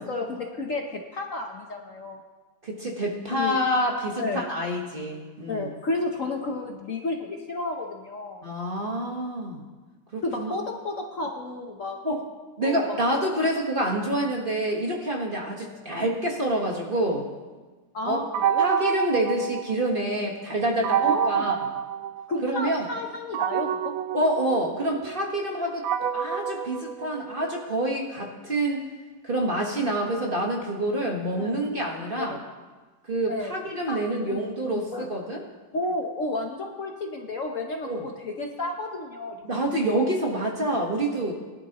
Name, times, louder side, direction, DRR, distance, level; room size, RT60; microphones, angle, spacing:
voice 1, 0.0-2.2 3.3-3.6 4.2-4.4 5.5-8.5 10.2-12.0 12.6-12.8 13.1-13.2 15.7-15.8 17.9-18.6 21.0-21.5 22.3-23.9 31.4-31.6 32.2-32.4 33.3-33.5 33.9-34.4 34.9-35.1 35.7-39.4, left 2 dB, 50° left, 2 dB, 1.1 m, -32 dB
voice 2, 2.6-5.7 8.4-9.6 10.1-10.5 12.0-12.2 12.6-17.2 18.0-18.3 18.6-21.6 22.4-22.8 24.1-25.8 26.1-28.8 29.2-32.4 33.1-35.4 37.8-38.1 39.4-41.3, right 1 dB, 30° right, -1 dB, 1.4 m, -27 dB
sound 1, 18.3-20.2 20.8-22.6 23.3-27.6, right 9 dB, 90° right, 1.4 m, -28 dB
20.5 x 11.5 x 3.0 m, 1.3 s
omnidirectional pair, 2.1 m